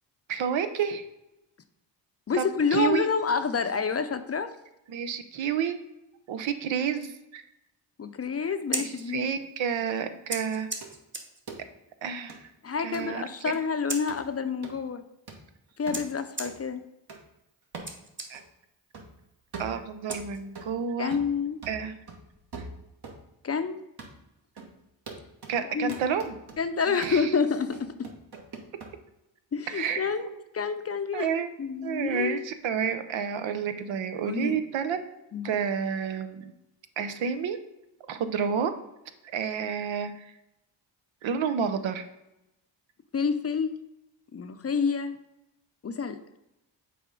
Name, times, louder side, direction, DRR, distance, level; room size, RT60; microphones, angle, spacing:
voice 1, 0.3-1.0 2.3-2.5 2.7-3.1 4.9-5.8 6.3-7.4 8.4-10.7 12.0-12.5 12.8-13.2 18.3-18.4 19.6-21.2 21.7-22.0 22.6-22.7 25.5-26.3 26.9-27.3 29.7-30.4 31.1-31.5 31.8-35.0 35.4-36.5 37.0-37.6 38.1-38.7 39.3-40.3 41.2-42.1, right 7 dB, 80° right, 9 dB, 0.7 m, -30 dB
voice 2, 2.3-4.5 8.0-9.2 12.6-15.0 15.8-16.8 21.0-21.6 23.4-23.8 25.7-26.0 26.6-28.1 29.5-30.3 30.5-31.3 31.6-32.4 34.2-34.6 35.3-35.5 43.1-43.8 44.3-45.2 45.8-46.2, left 5 dB, 35° left, 9 dB, 0.5 m, -28 dB
Scissors, 8.5-20.8, right 2 dB, 25° right, 1.2 m, -42 dB
sound 1, 10.8-10.9 11.5-11.6 12.3-12.4 12.9-13.1 13.5-13.6 14.1-14.3 14.6-14.8 15.3-15.4 15.9-16.1 16.5-16.6 17.1-17.2 17.7-18.0 18.3-18.4 18.9-19.1 19.5-20.8 21.1-21.4 21.6-23.2 23.5-23.6 24.0-24.2 24.6-24.7 25.1-25.6 25.9-26.6 27.0-27.2 27.7-28.9, right 3 dB, 55° right, 1.4 m, -42 dB
6.8 x 4.3 x 3.7 m, 0.91 s
cardioid pair, 55°, 45 cm